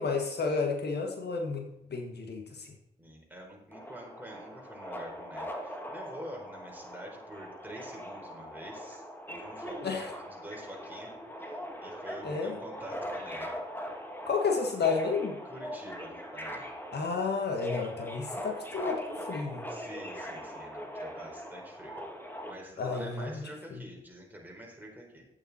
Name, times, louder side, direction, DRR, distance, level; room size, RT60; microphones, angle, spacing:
voice 1, 0.0-2.7 9.8-10.1 12.2-12.6 14.3-15.4 16.9-19.7 22.8-23.4 23.7-23.8, left 4 dB, 60° left, 3 dB, 1.6 m, -31 dB
voice 2, 3.0-11.1 11.4-13.6 15.4-16.8 19.7-22.0 22.5-25.3, right 1 dB, 10° right, -1 dB, 4.4 m, -47 dB
Subway metro underground, 3.7-22.5, equal, 10° left, 1.9 m, -41 dB
10.5 x 8.5 x 4.2 m, 0.82 s
cardioid pair, 55°, 19 cm